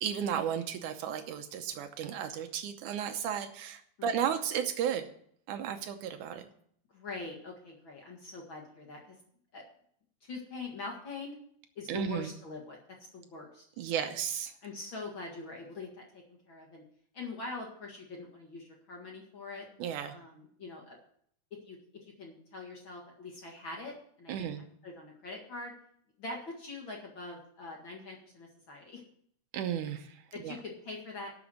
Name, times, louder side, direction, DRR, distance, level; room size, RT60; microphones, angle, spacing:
voice 1, 0.0-5.0 5.5-6.5 11.9-12.3 13.8-14.5 19.8-20.2 24.3-24.6 29.5-30.6, right 8 dB, 80° right, 7 dB, 2.3 m, -34 dB
voice 2, 6.9-9.2 9.5-9.6 10.2-11.4 11.8-12.8 13.1-14.1 14.6-16.8 17.1-19.7 20.1-21.0 21.6-21.8 22.2-25.7 26.2-29.0 30.3-31.3, left 3 dB, 45° left, -1 dB, 2.4 m, -43 dB
12.5 x 6.1 x 8.0 m, 0.64 s
omnidirectional pair, 3.5 m